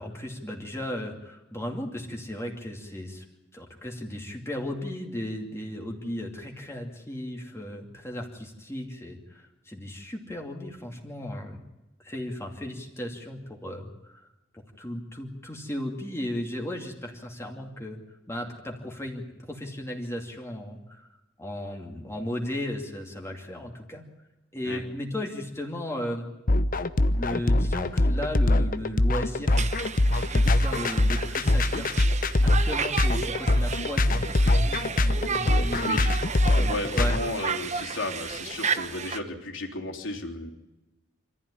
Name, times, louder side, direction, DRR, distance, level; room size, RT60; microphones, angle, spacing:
voice 1, 0.0-3.2 3.5-11.6 12.0-14.3 14.5-18.0 18.3-21.1 21.4-24.0 24.5-26.3 27.1-29.7 30.3-32.0 32.4-36.0 36.5-37.2, left 1 dB, 15° left, 1 dB, 2.6 m, -35 dB
sound 1, 26.5-37.2, left 1 dB, 45° left, 0.9 m, -23 dB
Conversation, 29.5-39.2, right 5 dB, 35° right, 1.1 m, -33 dB
voice 2, 35.6-36.1 36.6-40.5, left 2 dB, 75° left, 1 dB, 3.6 m, -34 dB
25.5 x 15.0 x 9.9 m, 1.0 s
head